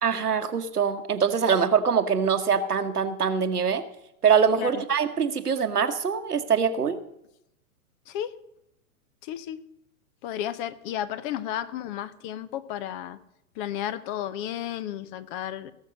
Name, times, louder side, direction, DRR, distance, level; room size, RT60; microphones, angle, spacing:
voice 1, 0.0-3.8 4.2-7.0, right 6 dB, 85° right, 8 dB, 1.3 m, -23 dB
voice 2, 8.1-8.4 9.2-9.6 10.2-13.2 13.6-15.7, left 11 dB, 35° left, 16 dB, 0.8 m, -33 dB
18.5 x 6.4 x 6.5 m, 0.81 s
figure-of-eight pair, 110°, 45 cm